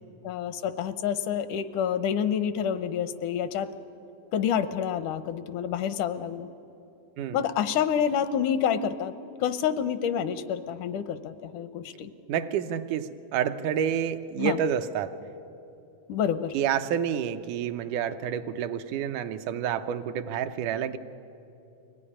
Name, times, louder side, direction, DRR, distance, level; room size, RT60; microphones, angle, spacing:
voice 1, 0.2-3.7 4.3-6.5 7.3-9.1 9.4-12.1 14.4-14.6 16.1-16.5, left 8 dB, 85° left, 12 dB, 2.3 m, -28 dB
voice 2, 12.3-15.1 16.5-21.0, right 9 dB, 80° right, 9 dB, 2.3 m, -29 dB
24.0 x 17.5 x 9.9 m, 2.8 s
omnidirectional pair, 3.5 m